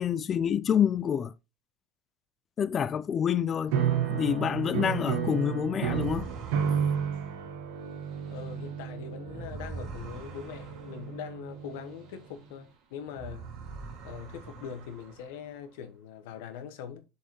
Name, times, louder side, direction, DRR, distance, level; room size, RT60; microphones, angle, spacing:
voice 1, 0.0-1.3 2.6-3.8 4.1-6.3, left 8 dB, 25° left, 0.3 m, -27 dB
sound 1, 3.7-12.0, right 8 dB, 75° right, 1.2 m, -32 dB
sound 2, 5.7-12.7 13.0-15.7, right 4 dB, 50° right, 2.2 m, -44 dB
voice 2, 8.3-13.5 14.0-17.0, left 8 dB, 90° left, 1.1 m, -42 dB
6.9 x 4.7 x 3.1 m
cardioid pair, 160°, 0 cm